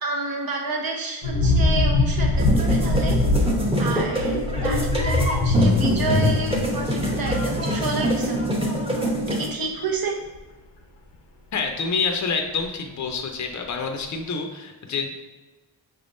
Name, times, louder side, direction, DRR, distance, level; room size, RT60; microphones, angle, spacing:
voice 1, 0.0-3.2 3.8-8.6 9.3-10.2, right 3 dB, 55° right, 0 dB, 1.0 m, -29 dB
sound 1, 1.2-8.6 8.9-9.1, left 2 dB, 90° left, 0.9 m, -23 dB
sound 2, 2.4-9.5, equal, 15° right, 0.9 m, -25 dB
voice 2, 11.5-15.2, left 5 dB, 40° left, 3 dB, 0.6 m, -27 dB
5.6 x 3.5 x 2.6 m, 1.2 s
cardioid pair, 75°, 43 cm